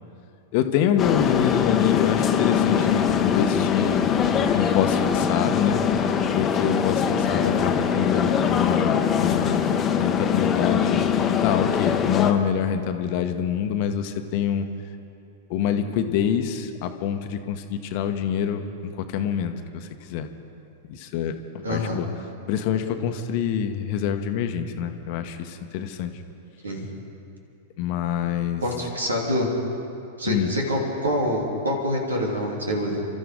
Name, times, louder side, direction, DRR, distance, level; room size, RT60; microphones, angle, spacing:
voice 1, 0.5-4.1 4.5-5.8 6.3-9.7 10.0-14.7 15.5-20.3 20.9-22.1 22.5-26.2 27.8-28.6 30.3-30.5, left 8 dB, 50° left, 8 dB, 1.1 m, -26 dB
sound 1, 1.0-12.3, left 7 dB, 25° left, 1.1 m, -22 dB
voice 2, 21.6-22.0 26.6-26.9 28.6-29.5 30.2-33.0, equal, 85° right, -1 dB, 3.1 m, -26 dB
29.0 x 13.0 x 3.7 m, 2.7 s
figure-of-eight pair, 100°, 0 cm